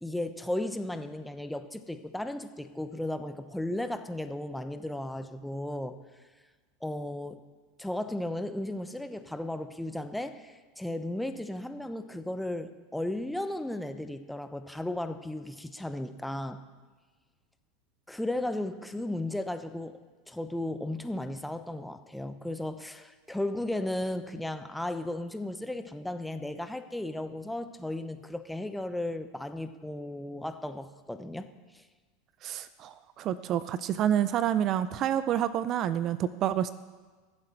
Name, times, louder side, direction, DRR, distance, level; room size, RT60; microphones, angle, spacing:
voice 1, 0.0-5.9 6.8-7.4 7.8-16.6 18.1-20.0 20.3-31.5 31.7-31.8, left 1 dB, 5° left, 9 dB, 0.9 m, -35 dB
voice 2, 32.4-36.7, right 10 dB, 45° right, 15 dB, 0.5 m, -28 dB
23.0 x 7.7 x 4.4 m, 1.4 s
hypercardioid pair, 90°, 0 cm